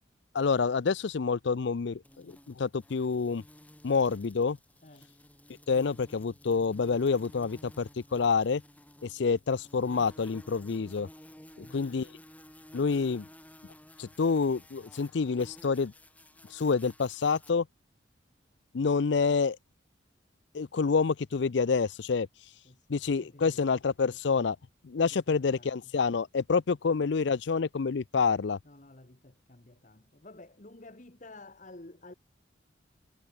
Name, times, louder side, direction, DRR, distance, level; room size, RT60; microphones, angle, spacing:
voice 1, 0.3-3.4 3.8-4.6 5.7-8.6 9.0-11.1 11.6-12.1 12.7-13.2 14.0-15.9 16.5-17.7 18.7-19.6 20.5-22.3 22.9-24.6 24.8-28.6, left 5 dB, 65° left, 0.5 m, -28 dB
sound 1, 2.0-17.5, left 1 dB, 10° left, 7.6 m, -54 dB
voice 2, 22.6-23.7 25.0-25.9 28.6-32.1, left 2 dB, 40° left, 1.5 m, -52 dB
head